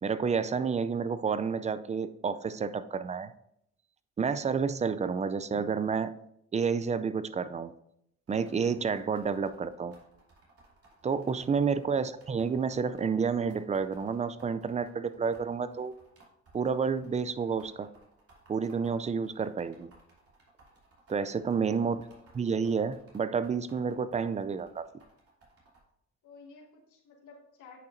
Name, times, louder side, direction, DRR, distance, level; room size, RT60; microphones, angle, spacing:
voice 1, 0.0-3.3 4.2-6.1 6.5-7.7 8.3-9.9 11.0-15.9 16.5-17.9 18.5-19.9 21.1-22.0 22.4-24.9, right 6 dB, 25° right, 14 dB, 0.4 m, -30 dB
sound 1, 8.3-13.1 13.5-25.8, right 2 dB, 50° right, 2.9 m, -60 dB
voice 2, 21.6-22.0 26.2-27.9, left 4 dB, 85° left, 0 dB, 1.7 m, -52 dB
9.2 x 5.7 x 2.6 m, 0.76 s
cardioid pair, 90°, 30 cm